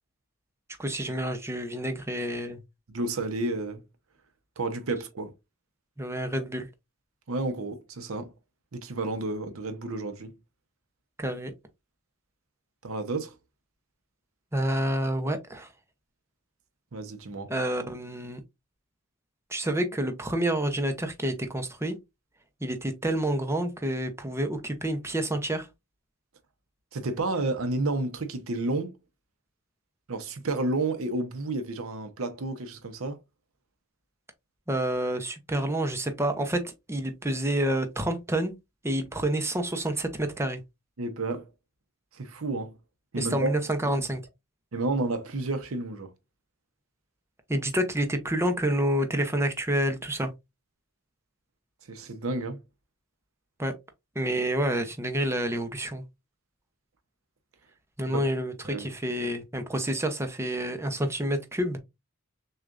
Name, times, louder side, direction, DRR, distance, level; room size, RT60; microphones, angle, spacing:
voice 1, 0.8-2.6 6.0-6.7 11.2-11.5 14.5-15.7 17.5-18.4 19.5-22.0 22.6-25.7 34.7-38.5 38.8-40.6 43.2-44.2 47.5-50.3 53.6-53.7 54.2-56.0 58.0-61.8, right 1 dB, 10° right, 0.7 m, -28 dB
voice 2, 2.9-3.8 4.6-5.3 7.3-8.3 8.7-10.3 12.8-13.3 16.9-17.5 26.9-28.9 30.1-33.2 41.0-41.5 42.1-42.7 43.1-43.5 44.7-46.1 51.9-52.6 58.1-58.3 58.6-58.9, right 2 dB, 75° right, 0.8 m, -31 dB
6.4 x 2.4 x 2.5 m
head